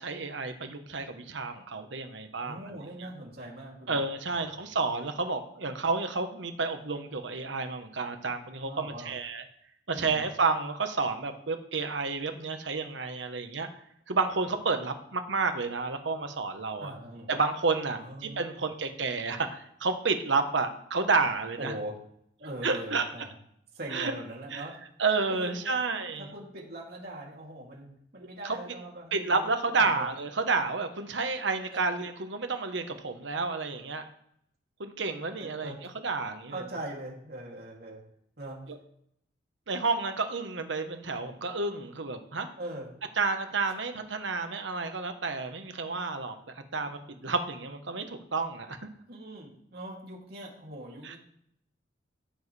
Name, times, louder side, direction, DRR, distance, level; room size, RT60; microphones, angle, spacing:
voice 1, 0.0-3.1 3.9-9.4 9.9-13.7 14.1-16.9 17.3-21.7 22.6-23.0 23.9-24.1 24.5-24.6 25.0-26.3 28.4-28.6 29.1-34.1 34.8-35.7 36.0-36.5 38.7-38.8 39.7-42.5 43.2-48.8 51.0-51.2, right 4 dB, 75° right, 7 dB, 1.1 m, -30 dB
voice 2, 2.4-4.1 4.3-4.7 8.6-9.1 9.9-10.3 16.8-17.3 18.0-18.4 21.6-22.0 22.4-23.3 23.7-24.8 25.3-25.8 26.2-29.5 29.7-30.1 31.7-31.8 35.4-35.8 36.5-38.0 38.4-38.6 42.6-42.9 49.1-51.2, right 1 dB, 55° right, -2 dB, 2.8 m, -41 dB
14.0 x 7.3 x 3.3 m, 0.71 s
head